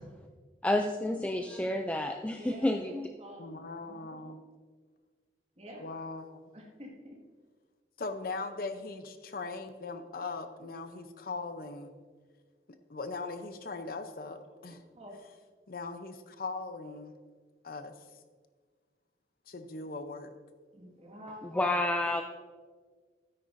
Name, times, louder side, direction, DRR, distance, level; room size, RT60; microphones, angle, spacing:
voice 1, 0.6-3.1 21.5-22.2, left 1 dB, 10° left, 4 dB, 0.3 m, -29 dB
voice 2, 2.3-3.5 3.8-4.4 5.6-5.9 6.5-7.2 14.9-15.1 20.7-21.5, equal, 35° right, -1 dB, 1.8 m, -48 dB
voice 3, 3.4-4.4 5.8-6.4 8.0-11.9 12.9-14.8 15.7-17.2 17.6-17.9 19.5-20.3, left 3 dB, 55° left, 8 dB, 0.6 m, -39 dB
13.0 x 9.6 x 2.6 m, 1.5 s
head